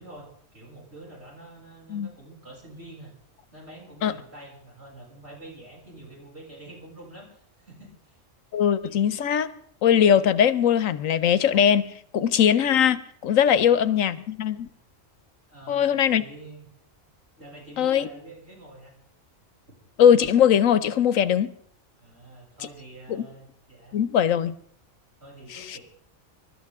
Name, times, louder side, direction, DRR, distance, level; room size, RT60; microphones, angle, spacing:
voice 1, 0.0-3.1 3.5-7.3 7.6-8.2 13.5-13.7 15.5-16.7 17.4-18.9 22.0-24.0 25.2-25.8, right 2 dB, 55° right, -4 dB, 7.1 m, -46 dB
voice 2, 8.5-9.5 9.8-14.7 15.7-16.2 17.8-18.1 20.0-21.5 23.1-23.2 23.9-24.5 25.5-25.8, left 9 dB, 85° left, 15 dB, 1.2 m, -20 dB
26.5 x 13.0 x 3.6 m, 0.62 s
omnidirectional pair, 1.3 m